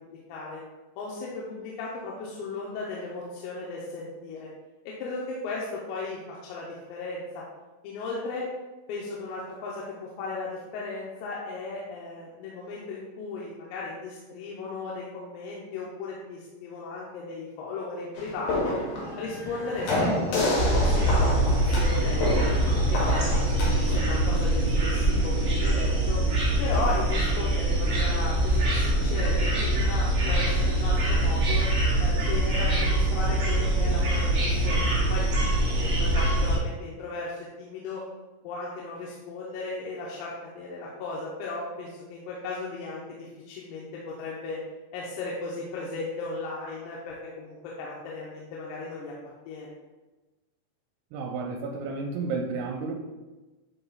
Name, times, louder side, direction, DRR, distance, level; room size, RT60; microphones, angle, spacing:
voice 1, 0.1-0.6 1.0-4.5 4.9-7.4 7.8-8.5 8.9-18.8 19.2-22.2 22.5-26.2 26.6-31.7 32.0-35.3 35.7-38.0 38.4-44.6 44.9-49.1 49.5-49.8, left 3 dB, 90° left, -4 dB, 3.5 m, -36 dB
sound 1, 18.2-24.0, left 2 dB, 70° left, 2.3 m, -29 dB
sound 2, 20.6-36.6, right 1 dB, 50° right, 1.5 m, -24 dB
voice 2, 51.1-52.9, right 4 dB, 85° right, 0 dB, 3.2 m, -31 dB
10.5 x 3.9 x 2.3 m, 1.2 s
omnidirectional pair, 5.9 m